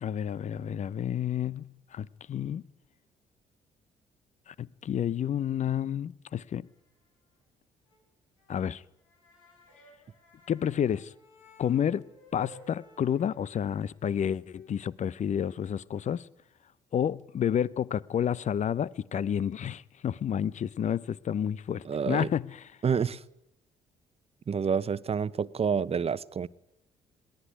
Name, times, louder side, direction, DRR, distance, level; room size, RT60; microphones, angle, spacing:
voice 1, 0.0-2.6 4.5-6.7 8.5-8.8 10.5-11.1 11.6-12.1 12.3-16.2 16.9-22.6, left 9 dB, 45° left, 0.8 m, -30 dB
sound 1, 6.5-7.1 7.4-7.5 7.9-8.0 8.4-8.5 8.9-14.9, left 1 dB, 85° left, 4.3 m, -57 dB
voice 2, 21.8-22.3 22.8-23.2 24.5-26.5, right 6 dB, 40° right, 1.0 m, -28 dB
21.0 x 18.0 x 9.6 m
hypercardioid pair, 50°, 16 cm